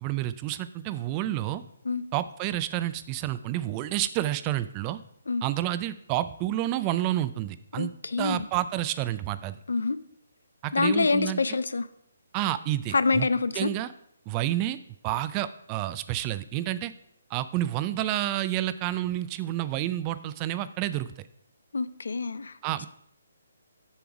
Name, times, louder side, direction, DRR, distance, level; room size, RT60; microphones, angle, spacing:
voice 1, 0.0-1.6 2.1-5.0 5.4-7.9 8.2-9.6 10.6-11.4 12.3-13.3 13.5-13.9 14.3-14.8 15.0-16.9 17.3-21.1 22.6-22.9, right 14 dB, 25° right, 14 dB, 0.4 m, -29 dB
voice 2, 7.8-8.5 9.7-10.0 10.7-11.9 12.9-13.7 21.7-22.5, left 4 dB, 75° left, 15 dB, 0.5 m, -26 dB
7.1 x 6.9 x 4.8 m, 0.71 s
figure-of-eight pair, 145°, 0 cm